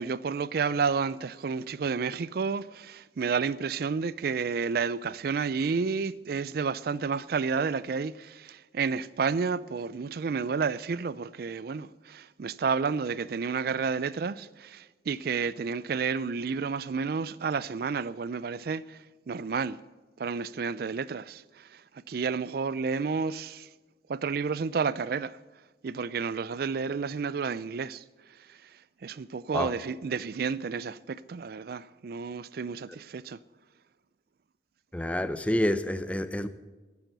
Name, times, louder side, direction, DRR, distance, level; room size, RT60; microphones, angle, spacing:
voice 1, 0.0-19.8 20.2-23.7 24.1-25.4 25.8-33.4, right 5 dB, 55° right, 0.4 m, -31 dB
voice 2, 34.9-36.5, left 1 dB, 5° left, 0.6 m, -28 dB
10.5 x 10.5 x 7.9 m
head